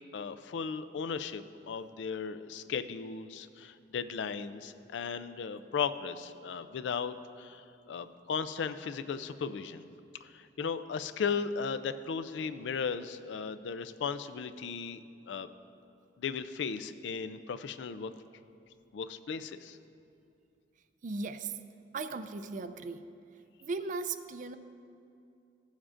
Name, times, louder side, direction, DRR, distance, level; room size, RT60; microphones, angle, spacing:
voice 1, 0.1-9.8 10.2-15.0 15.3-15.5 16.2-18.1 18.9-19.8, left 6 dB, 80° left, 11 dB, 0.4 m, -36 dB
voice 2, 21.0-21.5 21.9-23.0 23.6-24.6, right 3 dB, 45° right, 11 dB, 0.4 m, -37 dB
15.0 x 7.2 x 2.5 m, 2.6 s
head